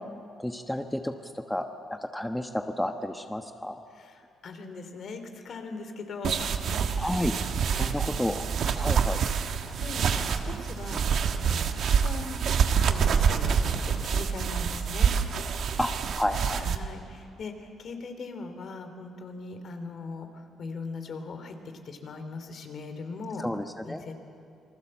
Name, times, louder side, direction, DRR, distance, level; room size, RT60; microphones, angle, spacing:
voice 1, 0.4-3.8 7.0-7.3 7.8-8.5 8.8-9.2 15.8-15.9 16.2-16.7 23.4-24.1, left 1 dB, 5° left, 6 dB, 1.1 m, -31 dB
voice 2, 4.0-6.8 7.3-7.9 9.6-11.1 11.4-12.4 12.9-15.1 16.6-20.3 20.6-21.5 21.8-23.5 23.8-24.1, left 4 dB, 60° left, 7 dB, 2.9 m, -40 dB
sound 1, 6.2-16.8, right 6 dB, 65° right, 1.4 m, -27 dB
27.5 x 20.0 x 7.5 m, 2.5 s
cardioid pair, 90°, 0 cm